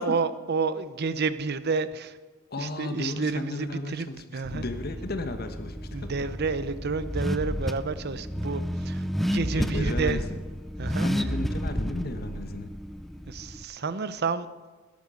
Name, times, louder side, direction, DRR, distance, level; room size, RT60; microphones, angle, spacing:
voice 1, 0.0-2.2 2.6-4.1 4.3-4.6 5.9-10.2 10.8-11.1 13.3-14.5, right 4 dB, 55° right, 14 dB, 0.7 m, -30 dB
voice 2, 2.5-6.4 9.6-10.2 11.0-12.7, left 2 dB, 50° left, 8 dB, 1.3 m, -34 dB
Car / Accelerating revving vroom, 4.4-13.6, equal, ahead, 0.4 m, -31 dB
14.5 x 10.5 x 6.4 m, 1.4 s
head